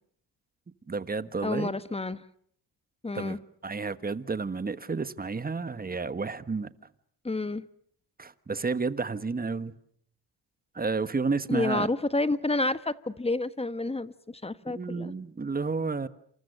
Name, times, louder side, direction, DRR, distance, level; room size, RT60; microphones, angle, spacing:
voice 1, 0.9-1.7 3.1-6.7 8.2-9.7 10.7-11.9 14.7-16.1, right 4 dB, 20° right, 1.4 m, -31 dB
voice 2, 1.4-2.2 3.0-3.4 7.2-7.6 11.5-15.1, left 2 dB, 15° left, 1.2 m, -29 dB
28.0 x 28.0 x 6.6 m
cardioid pair, 95°, 41 cm